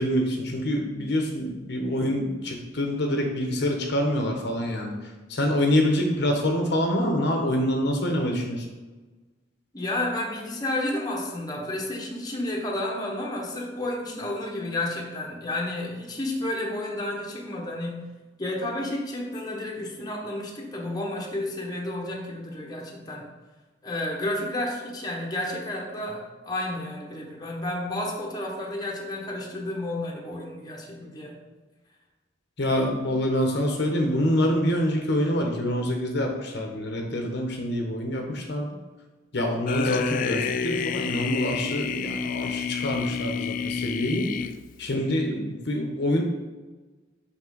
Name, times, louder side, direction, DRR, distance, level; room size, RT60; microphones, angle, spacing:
voice 1, 0.0-4.9 5.3-8.7 32.6-38.7 39.3-44.3 44.8-46.2, left 1 dB, 65° left, 2 dB, 1.0 m, -26 dB
voice 2, 9.7-18.0 18.4-23.3 23.8-31.4, left 1 dB, 20° left, -2 dB, 1.2 m, -31 dB
sound 1, 39.7-44.9, left 6 dB, 45° left, 0.3 m, -29 dB
6.1 x 5.8 x 3.9 m, 1.3 s
head